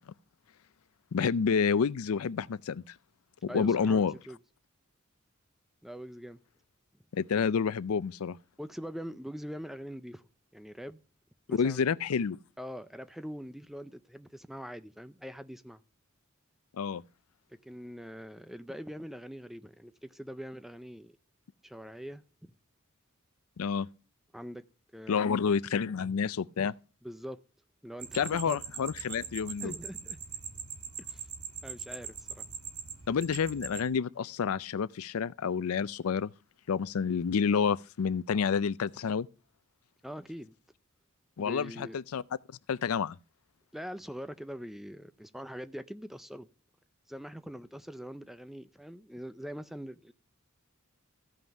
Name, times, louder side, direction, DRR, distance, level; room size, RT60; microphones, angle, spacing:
voice 1, 1.1-2.8 3.5-4.1 7.1-8.4 11.5-12.4 16.8-17.0 23.6-23.9 25.1-26.7 28.1-29.7 33.1-36.3 36.7-39.3 41.4-42.2 42.7-43.2, left 6 dB, 80° left, 0.4 m, -29 dB
voice 2, 3.5-4.4 5.8-6.4 8.6-10.2 10.5-11.0 11.5-11.8 12.6-15.8 17.5-21.2 21.6-22.5 24.3-24.7 24.9-25.5 27.0-27.4 27.8-28.6 29.6-30.2 31.1-31.2 31.6-32.5 40.0-40.5 41.4-42.0 43.7-46.5 47.1-50.1, equal, ahead, 0.4 m, -43 dB
sound 1, 28.0-33.8, right 7 dB, 80° right, 1.6 m, -42 dB
14.5 x 5.7 x 5.2 m
head